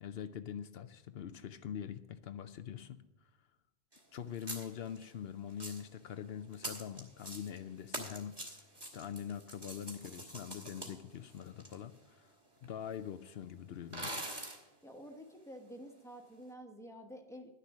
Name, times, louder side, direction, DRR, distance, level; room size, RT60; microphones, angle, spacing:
voice 1, 0.0-3.0 4.1-8.6 8.9-12.3 12.6-14.2, left 9 dB, 75° left, 11 dB, 0.8 m, -44 dB
sound 1, 3.9-4.0 4.3-5.1 5.5-5.9 6.5-7.6 7.9-11.7 12.6-12.7 12.9-13.0 13.9-14.6, right 1 dB, 25° right, 1.9 m, -44 dB
voice 2, 14.8-17.5, equal, 5° left, 3 dB, 1.2 m, -50 dB
11.5 x 6.8 x 7.2 m, 1.0 s
omnidirectional pair, 1.0 m